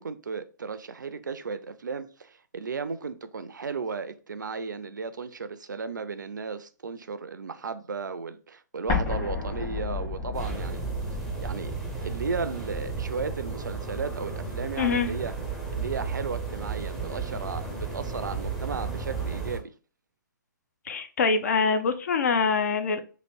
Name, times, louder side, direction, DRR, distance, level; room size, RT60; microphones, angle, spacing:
voice 1, 0.0-10.8 11.4-11.7 12.0-15.3 15.7-19.7, right 5 dB, 70° right, 0.4 m, -35 dB
Explosion, 8.9-13.6, left 4 dB, 25° left, 1.3 m, -33 dB
sound 1, 10.3-19.6, right 5 dB, ahead, 0.6 m, -34 dB
voice 2, 14.8-15.1 20.9-23.0, left 5 dB, 55° left, 0.6 m, -24 dB
3.1 x 2.6 x 4.2 m
figure-of-eight pair, 125°, 10 cm